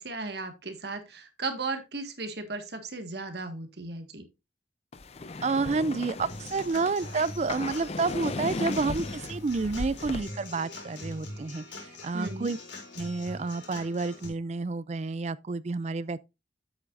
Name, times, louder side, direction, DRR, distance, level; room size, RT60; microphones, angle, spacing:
voice 1, 0.0-4.2 12.1-12.5, right 3 dB, 65° right, 1.7 m, -36 dB
sound 1, 4.9-10.2, left 3 dB, 35° left, 0.5 m, -36 dB
voice 2, 5.4-12.6 13.0-16.2, right 4 dB, 35° right, 0.4 m, -30 dB
Human voice / Acoustic guitar / Drum, 6.3-14.3, left 2 dB, 85° left, 4.3 m, -43 dB
10.0 x 8.1 x 2.5 m
head